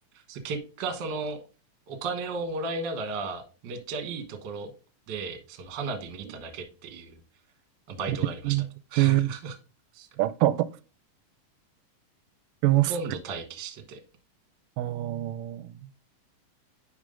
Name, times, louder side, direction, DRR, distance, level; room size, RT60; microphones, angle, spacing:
voice 1, 0.1-1.4 1.9-4.7 5.1-7.2 7.9-8.6 8.9-9.5 9.9-10.1 12.9-14.0, right 3 dB, 55° right, 1.3 m, -35 dB
voice 2, 9.0-9.3 10.2-10.7 12.6-12.9 14.8-15.7, right 16 dB, 90° right, 2.2 m, -24 dB
10.5 x 3.6 x 3.7 m
omnidirectional pair, 3.7 m